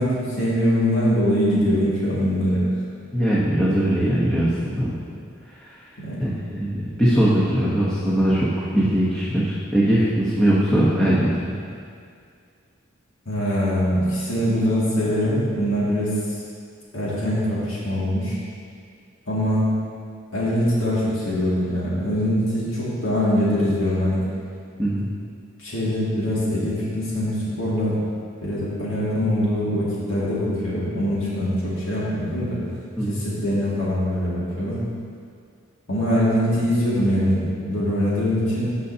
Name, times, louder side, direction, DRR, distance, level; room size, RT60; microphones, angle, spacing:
voice 1, 0.0-2.6 6.0-6.3 13.3-16.1 16.9-18.4 19.3-19.7 20.3-24.2 25.6-28.0 28.4-32.6 33.1-34.9 35.9-38.8, equal, 75° left, -8 dB, 2.3 m, -23 dB
voice 2, 3.1-5.1 5.4-11.5 24.8-25.1 33.0-33.2, right 1 dB, 5° left, -9 dB, 1.0 m, -21 dB
15.5 x 5.5 x 2.8 m, 2.2 s
head